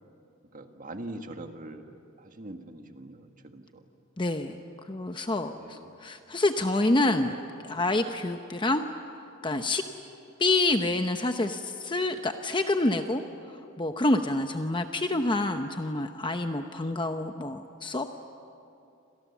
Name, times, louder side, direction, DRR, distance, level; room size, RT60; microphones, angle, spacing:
voice 1, 0.5-3.8 5.6-6.1, right 1 dB, 40° right, 5 dB, 1.7 m, -43 dB
voice 2, 4.2-4.6 4.9-7.3 7.6-8.8 9.4-9.8 10.4-13.2 13.5-18.1, left 2 dB, 20° left, 6 dB, 0.8 m, -27 dB
29.0 x 26.5 x 7.3 m, 2.7 s
head